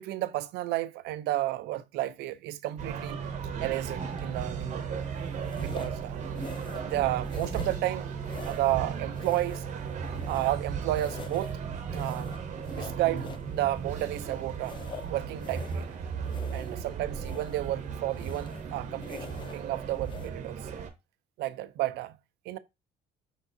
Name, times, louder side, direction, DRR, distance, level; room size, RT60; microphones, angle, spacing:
voice 1, 0.0-3.2 3.6-5.0 5.6-6.2 6.8-8.1 8.5-9.7 10.3-11.6 11.9-12.4 12.7-14.8 15.1-16.0 16.5-20.6 21.4-22.2 22.5-22.6, right 15 dB, 80° right, 0.4 m, -32 dB
sound 1, 2.8-20.9, right 6 dB, 45° right, 0.9 m, -36 dB
sound 2, 4.2-4.5 5.4-6.0 6.3-7.0 7.2-7.9 8.2-8.8 9.1-10.7 10.9-11.6 11.9-13.5 13.9-15.9 16.2-16.9 17.2-17.7 18.1-18.7 19.0-19.6 20.0-20.3, left 6 dB, 30° left, 0.4 m, -46 dB
5.1 x 3.4 x 2.6 m
cardioid pair, 110°, 17 cm